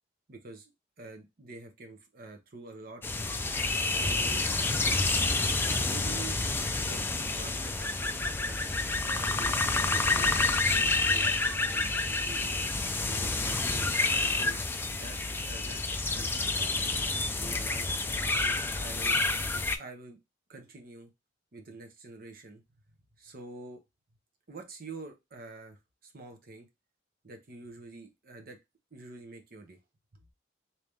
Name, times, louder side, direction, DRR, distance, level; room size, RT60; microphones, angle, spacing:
voice 1, 0.3-0.7 1.0-3.0 3.8-4.5 5.6-6.4 6.7-8.7 9.1-9.6 9.9-12.6 13.0-13.9 14.2-16.9 17.4-17.9 18.4-19.2 19.5-20.2 20.5-21.1 21.5-22.6 23.2-23.8 24.5-26.7 27.2-28.6 28.9-29.8, right 3 dB, 50° right, 0.9 m, -47 dB
sound 1, 3.0-19.8, left 3 dB, 10° left, 0.3 m, -29 dB
3.4 x 2.8 x 3.2 m
head